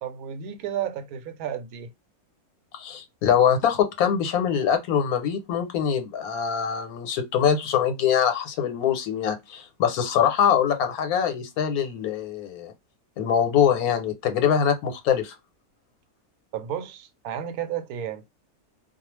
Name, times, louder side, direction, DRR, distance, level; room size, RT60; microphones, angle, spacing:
voice 1, 0.0-1.9 16.5-18.2, right 9 dB, 80° right, 1.1 m, -32 dB
voice 2, 2.7-12.7 13.2-15.3, left 8 dB, 90° left, 1.2 m, -23 dB
2.4 x 2.3 x 3.0 m
omnidirectional pair, 1.5 m